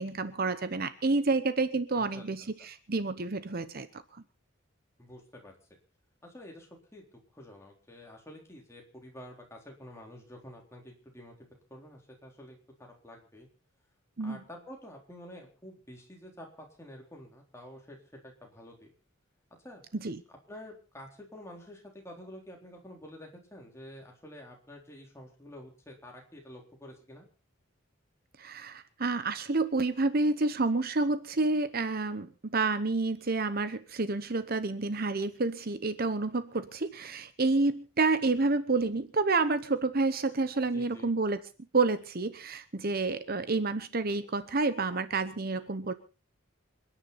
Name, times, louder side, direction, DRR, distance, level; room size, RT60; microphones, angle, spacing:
voice 1, 0.0-3.9 4.1-4.2 14.2-14.4 20.0-20.2 28.4-41.4 41.7-45.9, right 3 dB, 45° right, 12 dB, 0.9 m, -29 dB
voice 2, 1.9-2.3 2.6-2.7 5.0-5.5 6.2-11.3 11.7-13.5 14.2-18.0 18.2-18.9 19.6-19.8 20.3-27.3 40.7-41.1, left 1 dB, 15° left, 0 dB, 3.7 m, -49 dB
27.5 x 10.0 x 4.1 m, 0.35 s
head